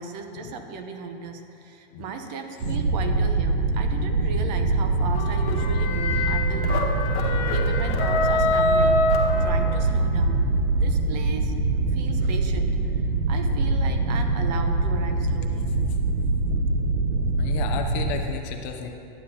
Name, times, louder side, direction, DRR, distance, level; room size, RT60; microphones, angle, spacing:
voice 1, 0.0-6.9 7.5-9.0 9.4-11.5 11.9-13.0 13.3-15.7, right 5 dB, 45° right, 6 dB, 0.8 m, -36 dB
sound 1, 2.6-18.2, right 2 dB, 75° right, 1.0 m, -24 dB
sound 2, 5.1-10.0, left 2 dB, 55° left, 1.3 m, -25 dB
voice 2, 17.4-18.9, left 7 dB, 35° left, 4 dB, 0.6 m, -32 dB
12.0 x 8.8 x 2.8 m, 2.7 s
hypercardioid pair, 145°, 30 cm